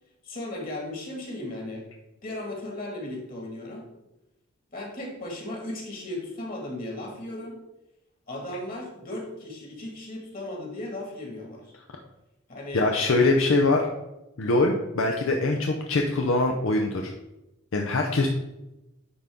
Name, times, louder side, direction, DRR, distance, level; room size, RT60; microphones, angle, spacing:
voice 1, 0.2-1.9 2.2-3.9 4.7-7.6 8.3-11.7 12.5-12.9, left 1 dB, 40° left, 0 dB, 1.8 m, -36 dB
voice 2, 12.7-13.9 14.4-17.1 17.7-18.3, left 2 dB, 70° left, 2 dB, 0.6 m, -23 dB
9.9 x 3.8 x 3.6 m, 0.94 s
head